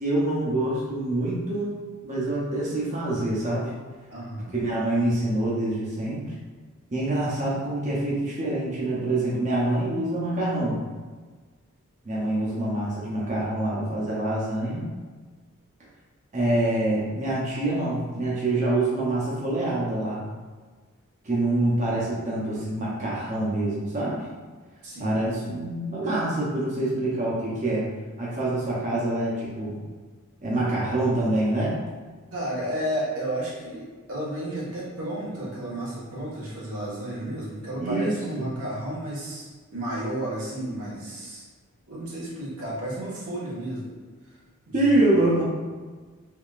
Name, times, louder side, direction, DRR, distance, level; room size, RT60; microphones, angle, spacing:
voice 1, 0.0-1.7 2.0-3.7 4.5-6.3 6.9-10.8 12.0-14.9 16.3-20.3 21.2-24.2 25.0-27.8 28.2-29.8 30.4-31.7 37.8-38.5 44.7-45.4, right 1 dB, 35° right, -6 dB, 0.7 m, -26 dB
voice 2, 4.1-4.5 24.8-25.2 32.3-41.4 41.9-43.8 44.2-44.4 44.7-45.4, right 1 dB, 90° right, -7 dB, 1.3 m, -32 dB
3.5 x 3.4 x 2.4 m, 1.4 s
head